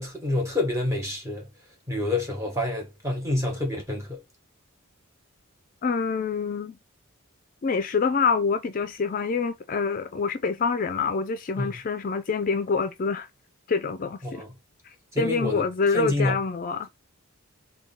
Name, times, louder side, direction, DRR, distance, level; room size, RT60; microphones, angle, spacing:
voice 1, 0.0-1.5 1.9-4.2 11.6-11.8 14.2-14.5 15.1-15.6 15.9-16.4, left 2 dB, 15° right, 1.0 m, -28 dB
voice 2, 5.8-6.8 7.6-13.3 13.7-14.4 14.8-16.9, left 5 dB, 40° left, 0.4 m, -26 dB
3.5 x 2.3 x 3.8 m
head